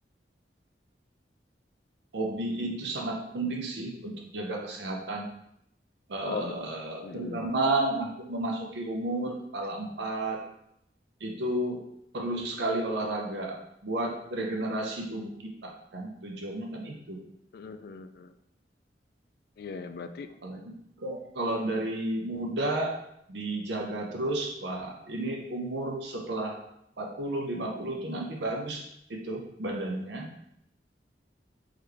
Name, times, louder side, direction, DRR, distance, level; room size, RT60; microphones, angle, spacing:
voice 1, 2.1-5.3 6.1-10.4 11.2-11.8 12.1-13.6 13.8-15.3 15.6-17.2 20.4-20.6 21.0-22.9 23.3-26.6 27.0-28.8 29.1-30.3, right 2 dB, 80° right, 0 dB, 0.7 m, -32 dB
voice 2, 6.2-6.5 7.0-7.4 17.5-18.3 19.6-20.3, left 5 dB, 60° left, 9 dB, 0.3 m, -38 dB
3.8 x 3.2 x 3.3 m, 0.76 s
head